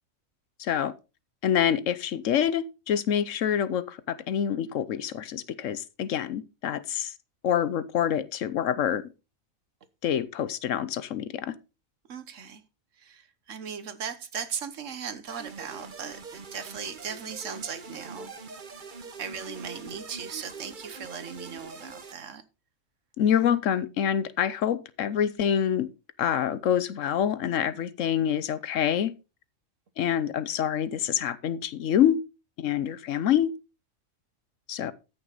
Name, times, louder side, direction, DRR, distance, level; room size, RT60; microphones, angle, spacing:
voice 1, 0.6-0.9 1.4-7.1 7.4-9.0 10.0-11.5 23.2-25.9 26.2-29.1 30.0-32.2 32.6-33.5 34.7-34.9, left 9 dB, 70° left, 1.0 m, -26 dB
voice 2, 12.1-12.6 13.0-18.3 19.2-22.4 23.3-23.4, right 7 dB, 65° right, 1.4 m, -38 dB
sound 1, 15.3-22.1, right 4 dB, 40° right, 1.1 m, -43 dB
14.0 x 6.3 x 4.0 m
omnidirectional pair, 1.4 m